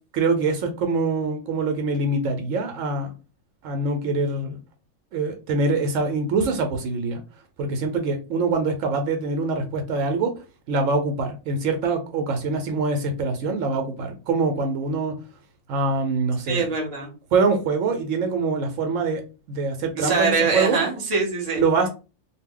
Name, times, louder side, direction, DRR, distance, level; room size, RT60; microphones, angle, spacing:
voice 1, 0.1-3.1 3.6-4.6 5.1-7.2 7.6-10.3 10.7-15.1 15.7-16.6 17.3-19.2 19.5-20.8 21.6-21.9, right 3 dB, 75° right, 5 dB, 0.9 m, -24 dB
voice 2, 16.5-17.1 20.0-21.6, right 4 dB, 30° right, 1 dB, 0.7 m, -23 dB
2.3 x 2.1 x 3.6 m, 0.33 s
omnidirectional pair, 1.4 m